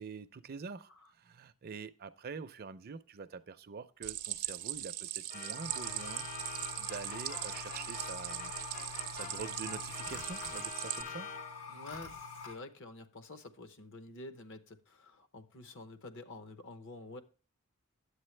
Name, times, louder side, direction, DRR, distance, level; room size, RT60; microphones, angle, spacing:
voice 1, 0.0-6.5 6.8-8.5 9.1-11.3, right 5 dB, 45° right, 0.5 m, -46 dB
Stream, 4.0-11.0, right 14 dB, 80° right, 0.6 m, -40 dB
sound 1, 5.3-11.8, left 5 dB, 35° left, 0.4 m, -47 dB
sound 2, 5.6-12.6, left 5 dB, 85° left, 2.8 m, -46 dB
voice 2, 11.7-17.2, left 2 dB, 60° left, 0.9 m, -49 dB
9.7 x 8.1 x 3.2 m
head